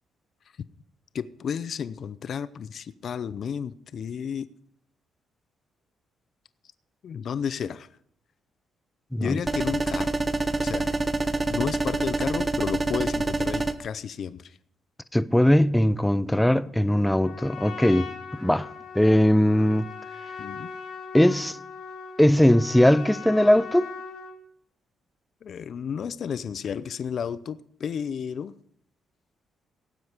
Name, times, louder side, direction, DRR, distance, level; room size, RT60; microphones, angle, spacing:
voice 1, 1.1-4.5 7.0-7.9 9.2-10.2 10.6-10.9 11.5-14.6 20.4-20.7 25.4-28.5, left 7 dB, 55° left, 0.6 m, -32 dB
sound 1, 9.5-13.7, right 2 dB, 25° right, 1.0 m, -26 dB
voice 2, 15.1-18.1 18.4-18.7 18.9-19.9 21.1-21.6 22.2-23.9, left 1 dB, 5° left, 0.6 m, -20 dB
Trumpet, 17.1-24.4, left 5 dB, 75° left, 5.1 m, -40 dB
18.0 x 7.9 x 5.0 m
cardioid pair, 90°, 0 cm